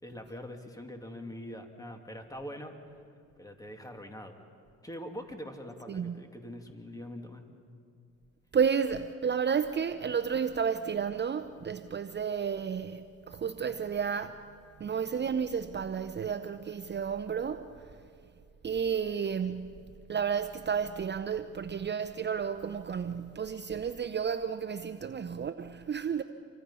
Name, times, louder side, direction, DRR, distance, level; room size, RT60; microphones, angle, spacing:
voice 1, 0.0-2.7 3.4-4.4 4.8-7.4, equal, 10° left, 2.5 m, -43 dB
voice 2, 8.5-13.0 13.3-14.4 14.8-17.7 18.6-19.7 20.1-26.2, right 7 dB, 35° right, 0.7 m, -31 dB
28.0 x 25.0 x 5.6 m
cardioid pair, 90°, 30 cm